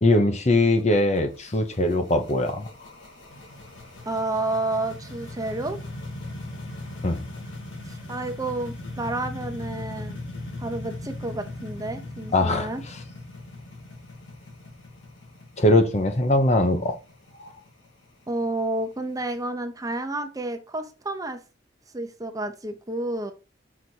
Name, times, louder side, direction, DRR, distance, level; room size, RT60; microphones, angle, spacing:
voice 1, 0.0-2.7 7.0-7.2 12.3-12.7 15.6-17.0, left 1 dB, 35° left, 0.8 m, -21 dB
sound 1, 0.6-19.4, left 2 dB, 75° left, 2.4 m, -39 dB
voice 2, 4.0-5.8 7.9-10.2 10.6-12.8 18.3-21.4 21.9-23.3, right 2 dB, 20° right, 0.7 m, -30 dB
6.0 x 4.1 x 4.6 m
head